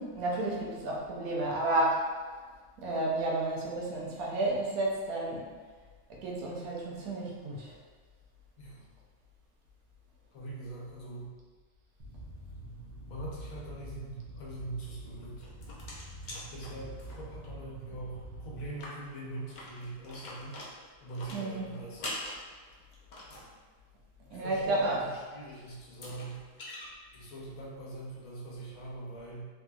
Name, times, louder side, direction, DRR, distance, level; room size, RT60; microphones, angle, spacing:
voice 1, 0.0-2.0 2.8-5.4 6.1-7.8 21.3-21.7 24.3-25.0, right 2 dB, 90° right, -3 dB, 1.1 m, -31 dB
voice 2, 10.3-11.3 13.1-15.5 16.2-20.6 21.0-22.0 24.3-26.4 27.1-29.5, right 2 dB, 75° left, -4 dB, 1.1 m, -43 dB
sound 1, 12.0-18.7, right 2 dB, 60° right, 0.6 m, -46 dB
sound 2, 15.2-17.5 17.8-17.9 18.2-18.3 18.7-23.5 25.3-25.4 25.8-26.9, left 1 dB, 55° left, 0.5 m, -44 dB
3.2 x 2.8 x 2.3 m, 1.4 s
omnidirectional pair, 1.5 m